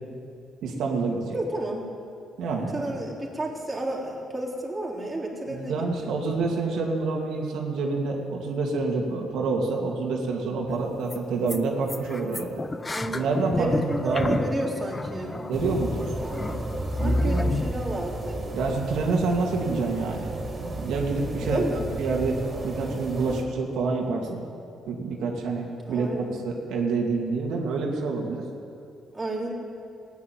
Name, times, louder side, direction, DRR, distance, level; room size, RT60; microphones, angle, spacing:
voice 1, 0.6-1.4 2.4-2.9 5.5-12.5 13.1-14.4 15.5-16.1 17.0-17.6 18.5-21.6 22.0-22.4 22.6-24.4 24.9-28.4, right 3 dB, 85° right, 0 dB, 2.1 m, -27 dB
voice 2, 1.3-1.9 2.7-6.1 12.9-13.3 13.6-15.5 16.2-16.7 17.0-18.4 21.5-21.9 25.9-26.3 29.1-29.5, right 1 dB, 15° right, -3 dB, 3.5 m, -32 dB
sound 1, 10.7-10.8 11.1-11.2 11.5-11.6 11.9-17.7, left 2 dB, 20° left, 0.6 m, -30 dB
sound 2, 15.5-23.4, right 2 dB, 35° right, 3.9 m, -34 dB
15.5 x 9.5 x 9.3 m, 2.5 s
cardioid pair, 90°, 0 cm